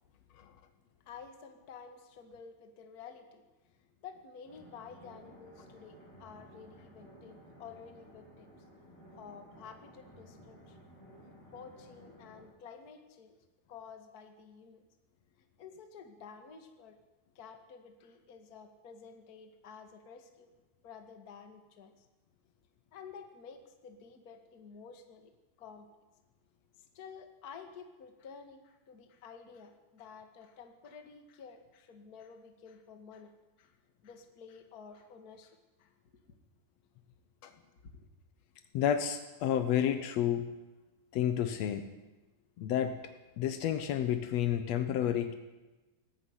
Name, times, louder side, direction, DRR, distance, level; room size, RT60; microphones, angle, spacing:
voice 1, 1.0-3.4 4.0-8.6 9.1-10.8 11.5-13.4 13.7-14.8 15.6-17.0 17.3-20.5 20.8-22.1 22.9-25.3 25.6-25.9 26.8-33.7 34.0-35.9 37.9-38.0, left 6 dB, 40° left, 6 dB, 1.5 m, -51 dB
sound 1, 4.5-12.5, equal, 90° right, 9.5 m, -56 dB
voice 2, 38.7-40.5 41.1-41.9 42.6-43.0 43.4-45.3, left 10 dB, 80° left, 9 dB, 1.5 m, -30 dB
19.0 x 14.5 x 9.6 m, 1.1 s
omnidirectional pair, 4.5 m